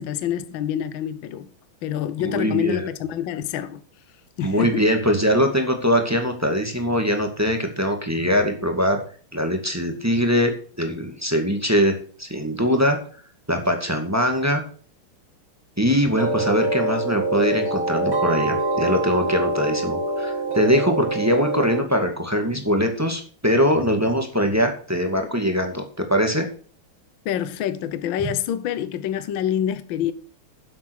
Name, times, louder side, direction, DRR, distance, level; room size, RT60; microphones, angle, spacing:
voice 1, 0.0-1.5 1.8-3.8 4.4-4.8 27.2-30.1, left 10 dB, 70° left, 1.6 m, -26 dB
voice 2, 2.2-2.9 4.4-9.0 9.3-10.5 10.8-13.0 13.5-14.6 15.8-25.8 26.1-26.5, equal, 10° right, 1.9 m, -22 dB
sound 1, 16.2-21.8, right 2 dB, 65° right, 3.8 m, -24 dB
10.5 x 7.9 x 6.3 m
omnidirectional pair, 2.4 m